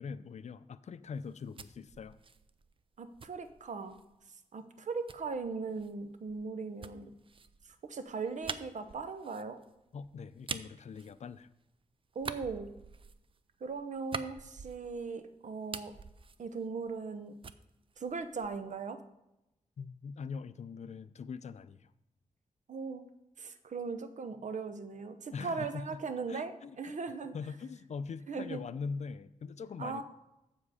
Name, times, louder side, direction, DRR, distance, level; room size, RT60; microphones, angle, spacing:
voice 1, 0.0-2.2 9.9-11.5 19.8-21.9 25.3-26.0 26.3-27.0 27.3-30.0, left 5 dB, 60° left, 14 dB, 0.4 m, -42 dB
sound 1, 1.2-4.2 5.1-11.7 12.1-15.2 15.5-17.2 17.4-18.7, right 5 dB, 45° right, 0.4 m, -46 dB
voice 2, 3.0-4.0 4.5-7.1 7.8-9.6 12.1-12.7 13.6-15.9 16.4-17.3 18.0-19.0 22.7-23.0 23.4-27.3 28.3-28.6 29.8-30.0, right 4 dB, 70° right, 9 dB, 0.8 m, -39 dB
7.4 x 7.3 x 4.9 m, 0.90 s
wide cardioid pair, 105°, 13 cm